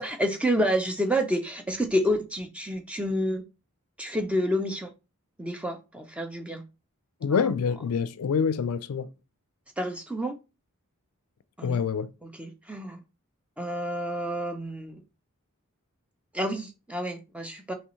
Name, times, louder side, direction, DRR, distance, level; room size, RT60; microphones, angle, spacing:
voice 1, 0.0-3.4 4.0-4.9 5.4-6.6 7.3-7.4 9.8-10.3 11.6-11.8 12.2-13.0 13.6-15.0 16.3-17.7, equal, 5° right, 0.5 m, -29 dB
voice 2, 7.2-9.1 11.6-12.1, left 6 dB, 80° left, 0.4 m, -26 dB
5.4 x 3.1 x 3.1 m
head